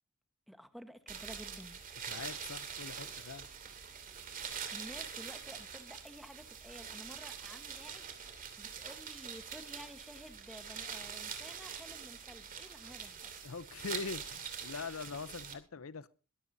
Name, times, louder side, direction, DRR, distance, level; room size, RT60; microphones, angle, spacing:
voice 1, 0.5-1.8 4.7-13.3, equal, ahead, 1.2 m, -52 dB
sound 1, 1.1-15.5, right 7 dB, 40° right, 2.7 m, -44 dB
voice 2, 2.0-3.5 13.4-16.1, left 4 dB, 85° left, 0.7 m, -43 dB
22.0 x 14.0 x 2.7 m
head